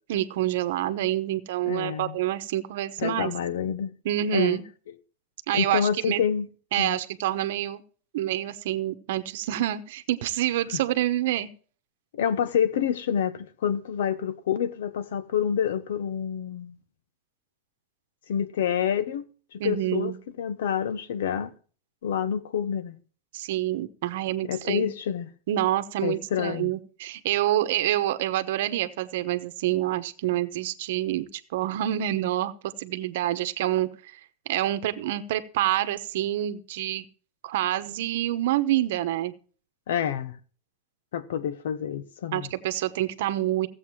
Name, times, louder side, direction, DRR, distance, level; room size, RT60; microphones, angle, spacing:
voice 1, 0.1-3.3 4.0-4.6 5.5-6.2 6.7-7.8 8.1-11.5 19.6-20.2 23.3-24.9 25.5-33.9 34.5-37.1 37.4-39.3 42.3-43.7, right 13 dB, 55° right, 1.0 m, -27 dB
voice 2, 1.7-2.2 3.0-3.9 4.3-4.6 5.5-6.5 6.8-7.0 10.7-10.8 12.1-16.7 18.3-19.2 19.5-21.5 22.0-23.0 24.4-25.3 26.0-26.7 39.9-40.4 41.1-42.5, left 8 dB, 75° left, 1.0 m, -28 dB
15.5 x 7.9 x 4.7 m
supercardioid pair, 180°, 0 cm